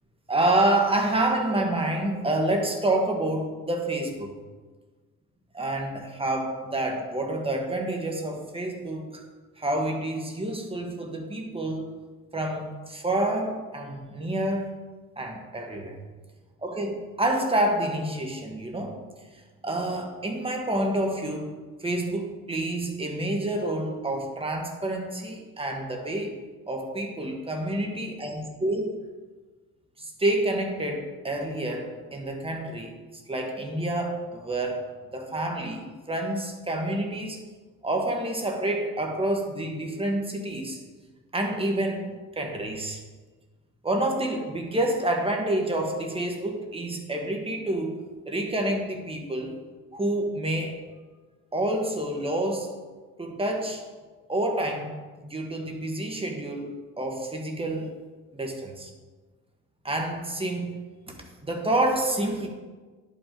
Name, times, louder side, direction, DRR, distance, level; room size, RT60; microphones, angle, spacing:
voice 1, 0.3-4.3 5.5-9.2 9.6-11.9 12.3-14.7 15.2-16.0 16.6-19.0 19.6-21.5 21.8-26.4 26.7-29.0 30.0-32.9 33.3-34.9 35.1-37.4 37.8-40.8 41.3-43.0 43.8-49.6 49.9-50.8 51.5-52.7 53.2-53.8 54.3-58.0 58.3-58.9 59.8-60.8 61.4-62.5, right 1 dB, 15° right, 2 dB, 1.4 m, -28 dB
10.5 x 5.4 x 3.8 m, 1.3 s
cardioid pair, 105°, 33 cm